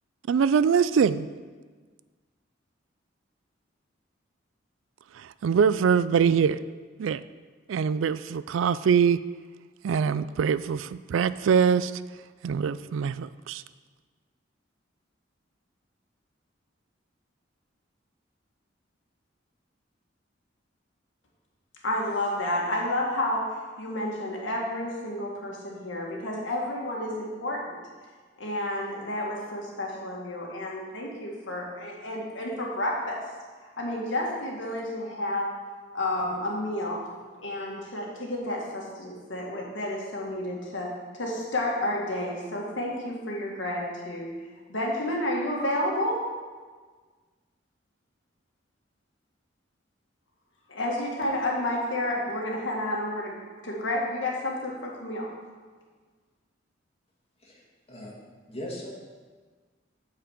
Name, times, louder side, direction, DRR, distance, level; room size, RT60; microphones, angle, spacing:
voice 1, 0.3-1.3 5.2-6.6 7.0-7.2 7.7-9.2 9.8-11.9 12.4-13.6, right 6 dB, 85° right, 0.3 m, -23 dB
voice 2, 21.8-27.8 28.4-33.2 33.8-35.5 35.9-37.0 37.4-40.9 41.2-44.3 44.7-46.2 50.7-55.3, left 1 dB, 75° left, 2.0 m, -30 dB
voice 3, 57.4-58.9, equal, 30° left, 2.0 m, -40 dB
8.6 x 4.8 x 7.4 m
head